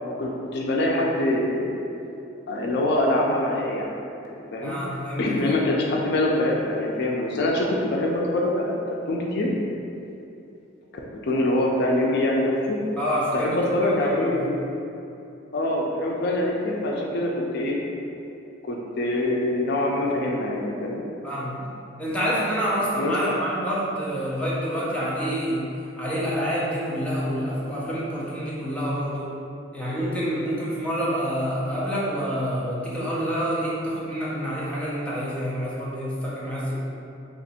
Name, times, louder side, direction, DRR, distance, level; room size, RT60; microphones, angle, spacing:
voice 1, 0.0-1.8 2.5-3.9 4.2-4.7 5.2-8.8 9.1-9.5 11.2-12.8 13.3-14.6 15.5-17.8 18.6-21.0 23.0-23.1, left 1 dB, 60° left, -2 dB, 0.4 m, -24 dB
voice 2, 4.6-5.5 13.0-14.5 21.2-21.6 22.0-25.7 26.0-29.3 29.7-36.8, equal, 5° left, -8 dB, 0.6 m, -27 dB
2.9 x 2.5 x 4.2 m, 2.7 s
head